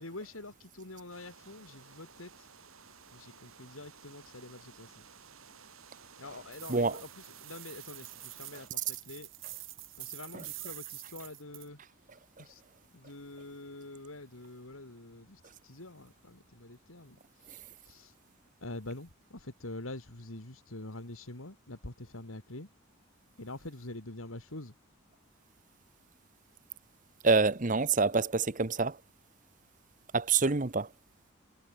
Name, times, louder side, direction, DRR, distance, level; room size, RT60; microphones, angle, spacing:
voice 1, 0.0-2.4 3.1-5.0 6.2-9.3 10.0-11.8 12.4-12.6 12.9-17.2 17.5-17.6 17.9-18.1 18.6-22.7 23.4-24.7 30.4-30.5, left 2 dB, 85° left, 3.1 m, -45 dB
sound 1, 1.1-8.7, right 6 dB, 90° right, 7.2 m, -55 dB
sound 2, 6.5-11.7, right 18 dB, 70° right, 3.7 m, -46 dB
voice 2, 6.7-7.0 10.3-10.5 27.2-29.0 30.1-30.9, right 4 dB, 40° right, 0.9 m, -26 dB
head